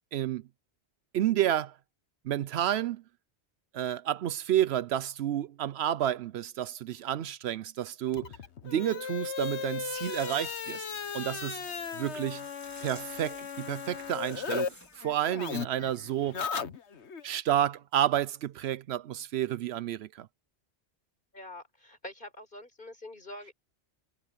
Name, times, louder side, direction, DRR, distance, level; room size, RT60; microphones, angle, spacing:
voice 1, 0.1-0.4 1.1-1.7 2.2-3.0 3.7-8.3 8.6-10.8 11.1-11.6 11.9-12.4 12.8-16.4 17.2-20.3, right 11 dB, 75° right, 0.8 m, -30 dB
sound 1, 8.1-14.7 15.0-17.2, left 6 dB, 90° left, 1.5 m, -36 dB
sound 2, 9.8-15.1, left 1 dB, 15° left, 3.1 m, -51 dB
voice 2, 21.3-23.5, left 1 dB, 50° left, 4.8 m, -45 dB
omnidirectional pair, 1.1 m